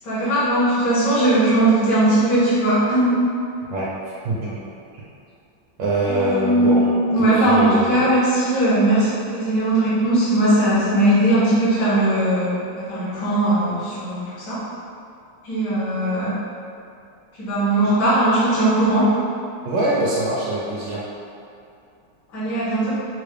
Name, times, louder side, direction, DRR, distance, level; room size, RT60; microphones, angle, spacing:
voice 1, 0.0-3.2 6.0-14.6 15.4-16.4 17.4-19.2 22.3-22.9, right 1 dB, 65° left, -10 dB, 1.6 m, -19 dB
voice 2, 3.7-4.6 5.8-6.9 7.1-8.2 19.6-21.0, right 1 dB, 75° right, -7 dB, 1.3 m, -24 dB
4.5 x 2.0 x 3.2 m, 2.5 s
omnidirectional pair, 2.1 m